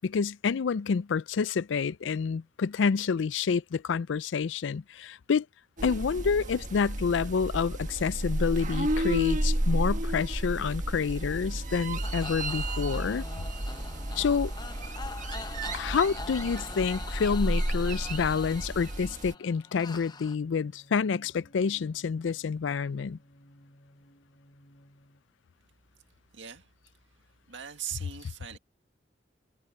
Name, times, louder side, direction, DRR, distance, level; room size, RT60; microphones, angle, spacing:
voice 1, 0.0-5.5 5.8-13.2 14.2-14.5 15.7-23.2, left 5 dB, 80° left, 0.4 m, -28 dB
sound 1, 5.8-19.3, right 1 dB, 45° right, 1.5 m, -32 dB
sound 2, 8.5-25.2, equal, 50° left, 4.3 m, -60 dB
sound 3, 12.0-20.4, left 4 dB, 20° left, 0.8 m, -43 dB
voice 2, 26.3-26.7 27.5-28.6, right 10 dB, 75° right, 2.0 m, -40 dB
head